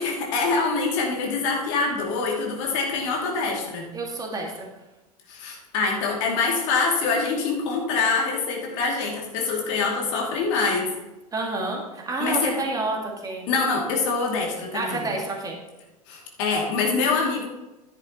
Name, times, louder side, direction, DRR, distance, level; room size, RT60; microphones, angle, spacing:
voice 1, 0.0-3.9 5.3-10.9 12.2-12.5 13.5-15.0 16.1-17.5, left 4 dB, 50° left, -1 dB, 2.5 m, -25 dB
voice 2, 3.9-4.7 11.3-13.5 14.7-15.6, right 2 dB, 20° right, 0 dB, 2.0 m, -29 dB
12.5 x 10.5 x 3.0 m, 1.0 s
figure-of-eight pair, 80°, 20 cm